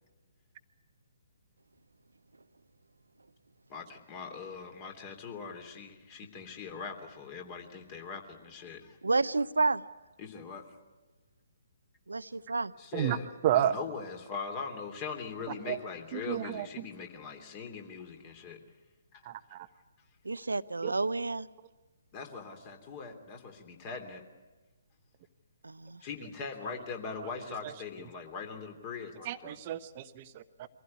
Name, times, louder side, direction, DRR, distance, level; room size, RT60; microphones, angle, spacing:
voice 1, 3.7-9.0 10.2-10.7 12.8-13.3 13.5-18.6 19.1-19.2 22.1-24.2 26.0-29.6, left 5 dB, 30° left, 4 dB, 3.0 m, -41 dB
voice 2, 9.0-9.8 12.1-12.7 20.2-21.5 25.6-26.0, right 3 dB, 75° right, 17 dB, 0.7 m, -30 dB
voice 3, 13.4-13.8 15.5-15.8 16.1-16.9 19.2-19.7 20.8-20.9 29.2-30.7, right 11 dB, 35° right, 11 dB, 0.9 m, -31 dB
24.5 x 16.0 x 9.7 m, 1.2 s
figure-of-eight pair, 135°, 0 cm